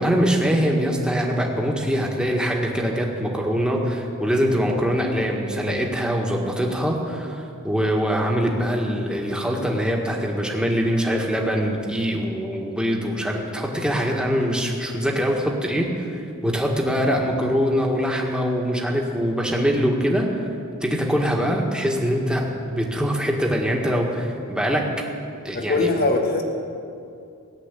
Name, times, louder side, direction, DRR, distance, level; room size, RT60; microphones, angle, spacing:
voice 1, 0.0-20.4 20.8-24.8 25.4-25.9, equal, 5° right, 0 dB, 1.8 m, -23 dB
voice 2, 25.5-26.4, left 2 dB, 45° left, 3 dB, 1.8 m, -22 dB
17.5 x 8.1 x 10.0 m, 2.5 s
head